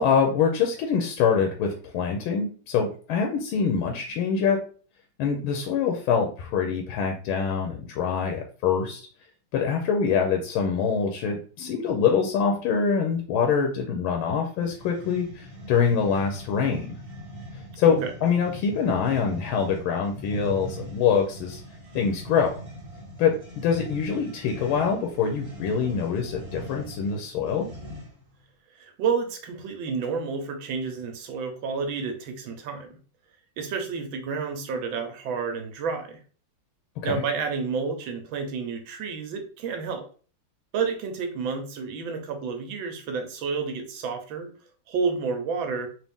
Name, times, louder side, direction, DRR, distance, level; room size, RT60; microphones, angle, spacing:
voice 1, 0.0-4.6 5.2-9.0 9.5-17.0 17.8-21.6 21.9-22.6 23.2-27.7 37.0-37.2, left 6 dB, 85° left, 3 dB, 1.5 m, -24 dB
sound 1, 14.6-28.3, equal, 20° right, 1.0 m, -41 dB
voice 2, 17.8-18.1 28.8-33.0 33.6-36.2 37.0-40.0 40.7-44.5 44.9-45.9, right 5 dB, 75° right, 5 dB, 1.4 m, -30 dB
4.1 x 2.5 x 3.5 m, 0.41 s
omnidirectional pair, 2.3 m